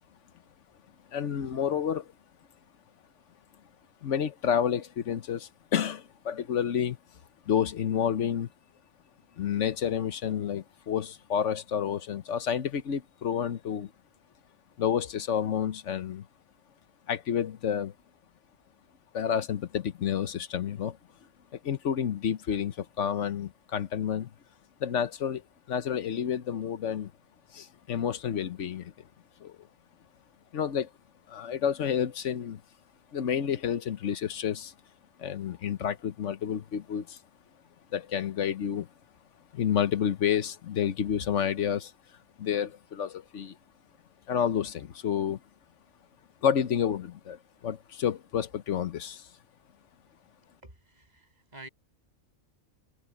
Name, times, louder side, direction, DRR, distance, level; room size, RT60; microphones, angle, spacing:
voice 1, 1.1-2.1 4.0-7.0 7.5-8.5 9.4-13.9 14.8-16.3 17.1-17.9 19.1-21.0 21.5-24.3 24.8-25.4 25.7-27.1 27.5-28.9 29.4-29.6 30.5-30.9 31.3-32.6 33.1-34.7 35.2-37.2 37.9-38.9 39.5-41.9 42.4-43.5 44.3-45.4 46.4-49.3, left 8 dB, 65° left, 1.2 m, -29 dB
voice 2, 50.6-51.7, right 2 dB, 30° right, 8.0 m, -49 dB
omnidirectional pair, 1.4 m